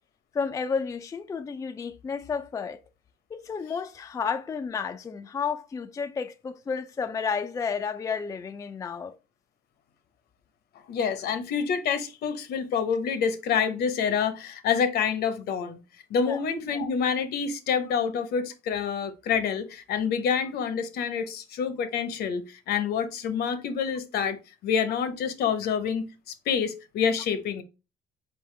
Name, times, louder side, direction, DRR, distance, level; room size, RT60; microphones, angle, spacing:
voice 1, 0.3-2.8 3.3-9.1 16.2-16.4, left 6 dB, 20° left, 0.3 m, -31 dB
voice 2, 10.9-15.8 16.1-27.6, left 6 dB, 70° left, 0.8 m, -27 dB
4.2 x 3.5 x 3.2 m
cardioid pair, 110°, 17 cm